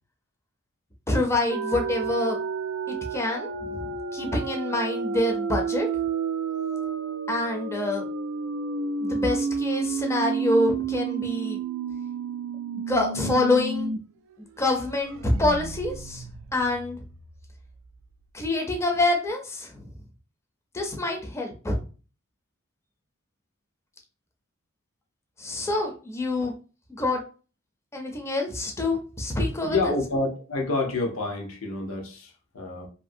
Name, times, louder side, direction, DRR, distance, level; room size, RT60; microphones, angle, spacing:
voice 1, 1.1-2.4 2.9-5.9 7.3-8.0 9.0-11.6 12.9-13.9 14.6-16.2 16.5-17.0 18.3-19.9 20.7-21.8 25.4-26.6 27.0-27.2 27.9-29.9, left 2 dB, 15° left, 2 dB, 0.5 m, -26 dB
sound 1, 1.5-14.0 14.3-14.4 14.8-17.5, right 5 dB, 70° right, 0.3 m, -31 dB
voice 2, 29.6-32.9, left 2 dB, 80° left, 1 dB, 0.8 m, -28 dB
2.7 x 2.6 x 2.5 m, 0.36 s
head